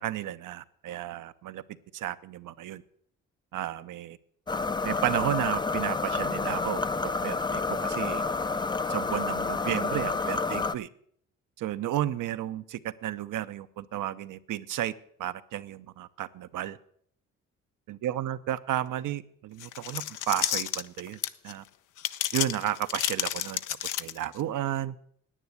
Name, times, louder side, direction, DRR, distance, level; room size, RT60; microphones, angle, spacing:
voice 1, 0.0-1.6 1.9-2.8 3.5-4.2 4.8-8.2 8.9-10.9 11.6-14.9 15.2-16.8 17.9-21.6 22.3-23.6 24.0-25.0, right 12 dB, 70° right, 12 dB, 0.7 m, -33 dB
sound 1, 4.5-10.7, left 4 dB, 15° left, 0.4 m, -29 dB
sound 2, 19.6-21.5 22.0-24.4, left 12 dB, 75° left, 0.6 m, -31 dB
10.0 x 9.2 x 8.0 m, 0.63 s
cardioid pair, 75°, 32 cm